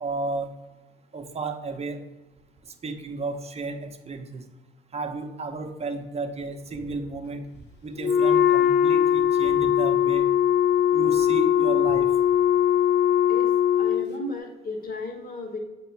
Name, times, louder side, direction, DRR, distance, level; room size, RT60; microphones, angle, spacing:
voice 1, 0.0-0.5 1.1-2.0 2.8-4.4 4.9-7.4 7.8-10.3 10.9-12.1, right 3 dB, 30° right, 5 dB, 0.8 m, -32 dB
Wind instrument woodwind instrument, 8.0-14.1, left 9 dB, 60° left, 0.6 m, -20 dB
voice 2, 13.8-15.6, left 2 dB, 45° left, 2 dB, 1.7 m, -34 dB
7.7 x 3.0 x 4.5 m, 1.1 s
cardioid pair, 90°, 20 cm